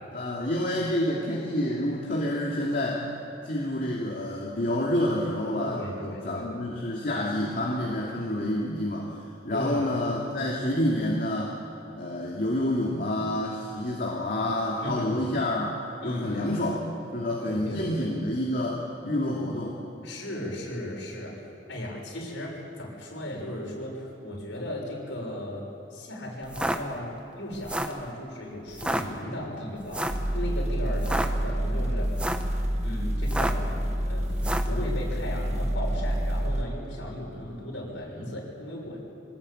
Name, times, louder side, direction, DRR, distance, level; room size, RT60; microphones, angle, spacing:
voice 1, 0.1-3.1 3.4-9.2 9.4-11.6 11.9-15.7 16.0-16.8 17.1-19.8, left 1 dB, 45° left, -3 dB, 2.6 m, -28 dB
voice 2, 5.6-6.5 9.5-9.9 14.8-15.3 16.0-16.4 17.4-18.1 20.0-21.3 21.7-25.6 25.9-32.1 32.8-34.3 34.7-39.0, left 1 dB, 65° left, -2 dB, 6.8 m, -36 dB
sound 1, 26.4-26.8 27.5-28.0 28.7-29.0 29.9-30.2 30.9-31.3 32.0-32.5 33.2-33.7 34.4-34.7, right 1 dB, 5° right, 1.0 m, -29 dB
sound 2, 30.1-36.6, equal, 35° right, 1.6 m, -28 dB
24.5 x 19.5 x 8.8 m, 2.8 s
head